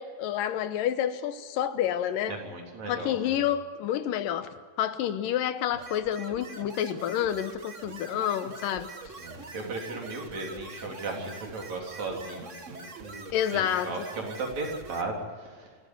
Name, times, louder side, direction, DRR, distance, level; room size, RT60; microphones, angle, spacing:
voice 1, 0.0-2.4 2.9-4.5 4.8-8.9 13.3-13.9, left 10 dB, 85° left, 11 dB, 2.6 m, -29 dB
voice 2, 2.3-3.4 9.2-15.2 15.5-15.7, right 3 dB, 55° right, 0 dB, 4.8 m, -36 dB
sound 1, 5.7-15.0, right 3 dB, 40° right, 1.1 m, -44 dB
26.0 x 14.5 x 9.6 m, 1.5 s
omnidirectional pair, 3.9 m